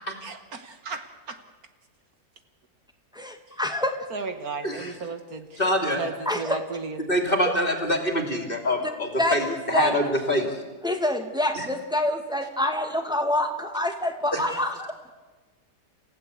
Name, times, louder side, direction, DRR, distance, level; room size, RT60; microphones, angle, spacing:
voice 1, 0.2-1.4 4.1-5.6 6.0-7.0, right 4 dB, 60° right, 8 dB, 1.7 m, -34 dB
voice 2, 3.1-4.0 5.6-5.7 6.3-6.6 8.8-8.9 9.2-10.0 10.8-14.9, left 1 dB, ahead, 4 dB, 2.0 m, -26 dB
voice 3, 5.6-6.0 7.1-10.6 11.6-11.7 14.3-14.4, equal, 30° left, 4 dB, 3.1 m, -25 dB
28.5 x 16.0 x 8.2 m, 1.3 s
omnidirectional pair, 1.8 m